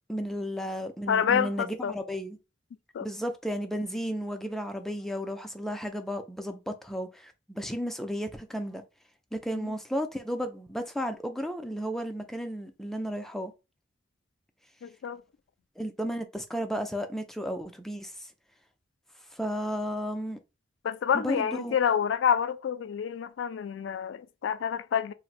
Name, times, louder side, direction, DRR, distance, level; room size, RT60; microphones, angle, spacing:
voice 1, 0.1-2.4 3.0-8.8 9.3-13.5 15.8-18.3 19.3-20.4 21.1-21.7, equal, ahead, 0.3 m, -33 dB
voice 2, 1.1-2.0 2.9-3.1 9.5-9.7 14.8-15.2 20.8-25.1, left 8 dB, 80° left, 0.3 m, -28 dB
2.5 x 2.0 x 3.9 m
head